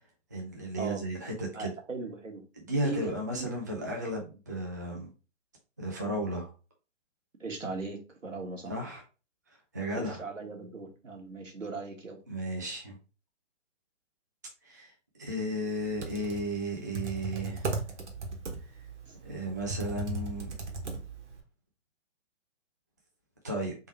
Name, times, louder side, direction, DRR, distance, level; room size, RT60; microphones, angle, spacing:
voice 1, 0.3-1.7 2.6-5.1 5.8-6.5 8.7-9.0 9.7-10.2 12.3-13.0 14.6-14.9 15.2-17.7 19.2-20.5 23.4-23.7, right 1 dB, 15° right, -1 dB, 0.3 m, -34 dB
voice 2, 1.5-2.4 2.8-3.1 3.3-3.5 7.4-8.7 9.9-12.2 19.1-19.2, right 3 dB, 85° right, 2 dB, 1.6 m, -38 dB
Computer keyboard, 15.8-21.4, right 3 dB, 65° right, 1.3 m, -36 dB
3.7 x 3.0 x 4.1 m, 0.32 s
figure-of-eight pair, 135°, 38 cm